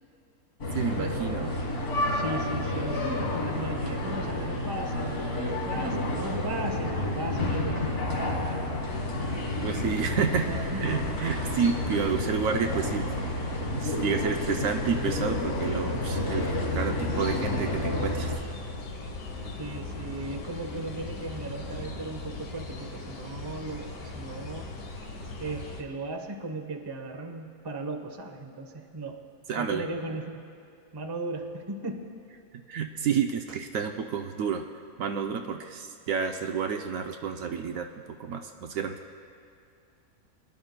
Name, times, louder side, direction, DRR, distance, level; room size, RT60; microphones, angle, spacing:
sound 1, 0.6-18.4, left 1 dB, 65° left, 1.9 m, -30 dB
voice 1, 0.7-1.6 9.6-10.5 10.8-13.1 13.7-18.3 29.5-29.8 32.7-34.6 35.0-39.0, right 6 dB, 70° right, 5 dB, 0.9 m, -30 dB
voice 2, 2.1-5.2 5.4-8.1 10.4-11.0 19.6-24.7 25.4-29.2 29.5-30.4 30.9-32.1, right 2 dB, 25° right, 4 dB, 0.6 m, -37 dB
sound 2, 8.9-25.8, left 3 dB, 80° left, 1.6 m, -39 dB
23.5 x 10.5 x 2.2 m, 2.4 s
omnidirectional pair, 1.6 m